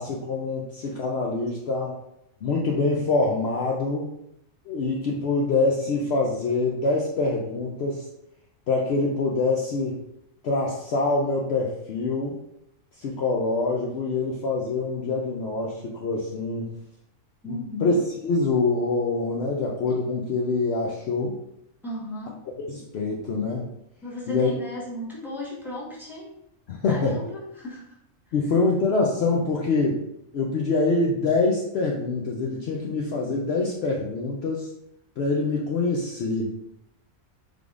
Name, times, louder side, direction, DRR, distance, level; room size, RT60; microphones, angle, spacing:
voice 1, 0.0-2.0 2.4-4.1 4.7-8.1 8.7-10.0 10.4-12.4 13.0-16.7 17.4-17.9 18.2-21.4 22.6-23.7 24.3-24.5 26.7-27.2 28.3-30.0 30.3-34.7 35.2-36.6, left 3 dB, 60° left, -2 dB, 0.7 m, -25 dB
voice 2, 17.4-17.9 21.8-22.4 24.0-26.3 26.8-27.9, left 1 dB, ahead, -7 dB, 1.1 m, -35 dB
5.0 x 3.4 x 2.5 m, 0.80 s
omnidirectional pair, 1.4 m